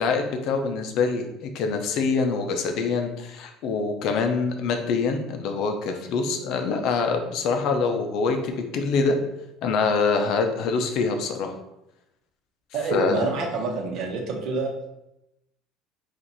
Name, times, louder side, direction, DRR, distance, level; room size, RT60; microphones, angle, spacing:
voice 1, 0.0-9.2 9.6-11.5 12.9-13.3, left 4 dB, 55° left, 5 dB, 0.5 m, -25 dB
voice 2, 12.7-14.7, right 3 dB, 50° right, 1 dB, 0.9 m, -27 dB
4.4 x 2.5 x 4.0 m, 0.87 s
cardioid pair, 160°, 0 cm